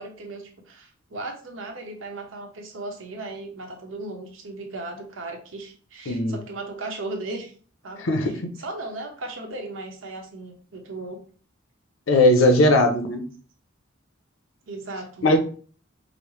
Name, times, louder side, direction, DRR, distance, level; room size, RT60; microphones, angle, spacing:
voice 1, 0.0-7.5 7.8-8.3 8.6-11.2 14.7-15.4, right 2 dB, 75° right, 3 dB, 0.9 m, -36 dB
voice 2, 6.1-6.4 8.0-8.5 12.1-13.2 15.2-15.4, left 1 dB, 85° left, 6 dB, 0.7 m, -18 dB
5.0 x 2.1 x 3.1 m, 0.42 s
head